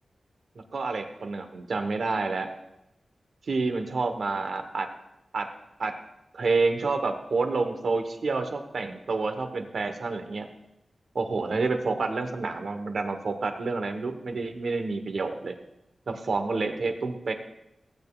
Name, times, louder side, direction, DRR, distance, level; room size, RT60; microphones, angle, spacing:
voice 1, 0.7-2.5 3.5-4.9 5.3-5.5 5.8-5.9 6.3-10.5 11.1-15.5 16.1-17.3, right 3 dB, 70° right, 6 dB, 1.0 m, -28 dB
16.0 x 8.6 x 2.3 m, 0.85 s
wide cardioid pair, 130°, 0 cm